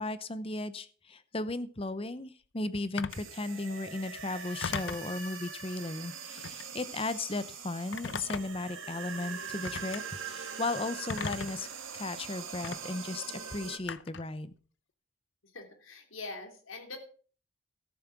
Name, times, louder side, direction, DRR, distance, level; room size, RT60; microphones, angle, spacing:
voice 1, 0.0-11.7 11.9-14.5, left 2 dB, 25° left, 14 dB, 0.7 m, -36 dB
Telephone, 3.0-3.3 4.6-5.1 6.4-6.7 7.9-8.7 9.6-10.0 11.1-11.7 12.6-12.8 13.9-14.3, left 5 dB, 60° left, 0.6 m, -37 dB
sound 1, 3.1-13.8, right 6 dB, 75° right, 2.1 m, -42 dB
voice 2, 15.4-17.0, left 3 dB, 80° left, 4 dB, 3.0 m, -43 dB
13.5 x 7.5 x 6.0 m, 0.42 s
head